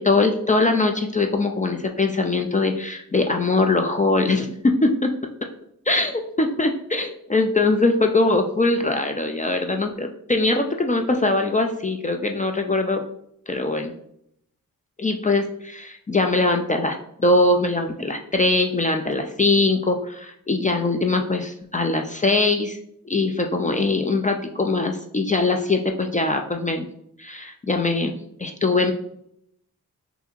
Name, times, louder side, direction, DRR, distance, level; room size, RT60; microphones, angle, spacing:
voice 1, 0.0-5.1 5.9-13.0 13.5-13.9 15.0-22.8 23.1-26.9 27.2-28.9, left 2 dB, 20° left, 4 dB, 0.4 m, -22 dB
5.5 x 2.6 x 2.5 m, 0.72 s
cardioid pair, 70°, 35 cm